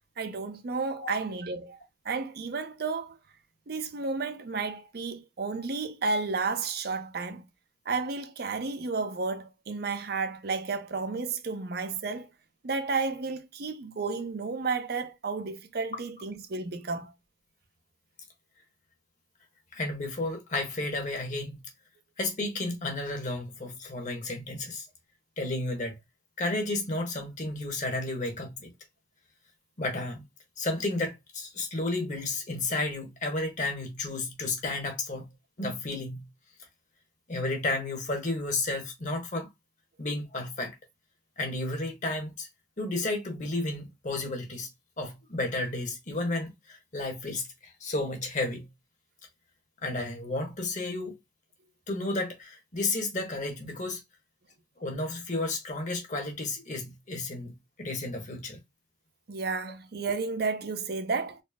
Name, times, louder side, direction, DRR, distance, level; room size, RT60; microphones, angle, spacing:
voice 1, 0.2-1.8 2.0-3.2 3.7-7.4 7.9-12.3 12.6-17.1 59.3-61.4, right 4 dB, 60° right, 0.6 m, -32 dB
voice 2, 19.7-21.6 22.2-24.9 25.4-26.0 26.4-28.7 29.8-30.2 30.6-35.3 35.6-36.2 37.3-39.5 40.0-40.8 41.4-42.5 42.8-44.7 45.0-48.7 49.8-51.2 51.9-54.0 54.8-58.6, left 2 dB, 45° left, 1.1 m, -32 dB
4.1 x 2.0 x 3.4 m
head